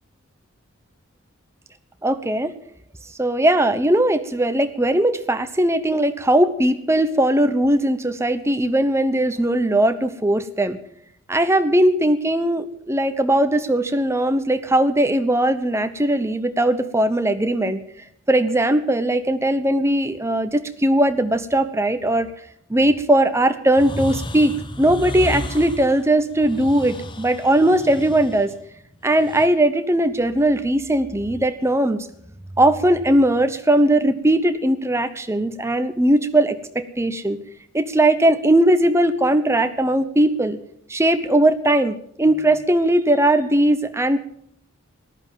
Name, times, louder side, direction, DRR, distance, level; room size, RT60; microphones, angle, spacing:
voice 1, 2.0-2.5 3.2-10.8 11.3-17.8 18.3-22.3 22.7-24.5 24.8-28.5 29.0-32.1 32.6-37.4 37.7-40.6 40.9-44.2, right 1 dB, 10° right, 9 dB, 0.9 m, -19 dB
sound 1, 23.8-29.5, left 1 dB, 20° left, 0.9 m, -33 dB
14.5 x 11.5 x 7.5 m, 0.70 s
head